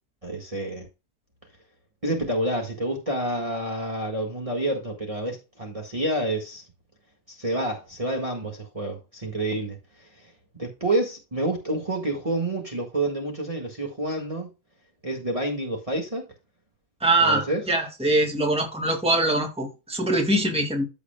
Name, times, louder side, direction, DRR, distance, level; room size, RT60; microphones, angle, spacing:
voice 1, 0.2-0.9 2.0-6.6 7.3-10.3 10.6-14.5 15.0-16.3 17.2-17.6, right 1 dB, 25° right, 1.8 m, -28 dB
voice 2, 17.0-20.8, right 2 dB, 5° right, 1.9 m, -23 dB
14.0 x 5.0 x 2.2 m
omnidirectional pair, 1.5 m